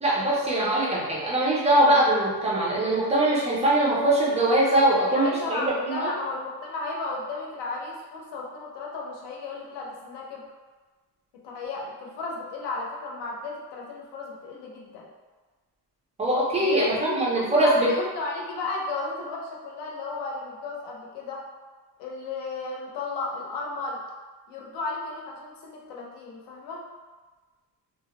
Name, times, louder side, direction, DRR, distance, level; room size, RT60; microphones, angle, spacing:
voice 1, 0.0-6.1 16.2-17.9, right 1 dB, 15° right, -5 dB, 0.4 m, -22 dB
voice 2, 4.9-10.4 11.4-15.1 16.6-21.4 22.0-24.0 24.5-26.8, left 3 dB, 75° left, -2 dB, 0.6 m, -34 dB
2.3 x 2.0 x 2.8 m, 1.3 s
cardioid pair, 170°, 41 cm